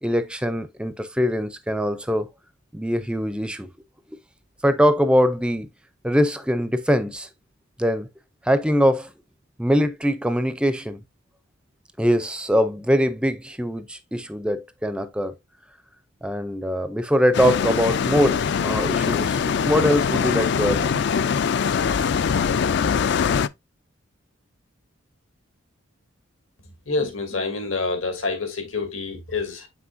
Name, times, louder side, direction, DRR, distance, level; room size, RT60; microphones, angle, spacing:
voice 1, 0.0-2.3 2.7-3.7 4.6-5.7 6.0-7.3 7.8-8.1 8.4-9.1 9.6-11.0 12.0-15.3 16.2-21.0, equal, 5° right, 0.4 m, -22 dB
sound 1, 17.3-23.5, left 6 dB, 55° left, 0.4 m, -22 dB
voice 2, 26.6-29.7, left 3 dB, 80° left, 2.7 m, -27 dB
7.8 x 6.0 x 2.6 m
head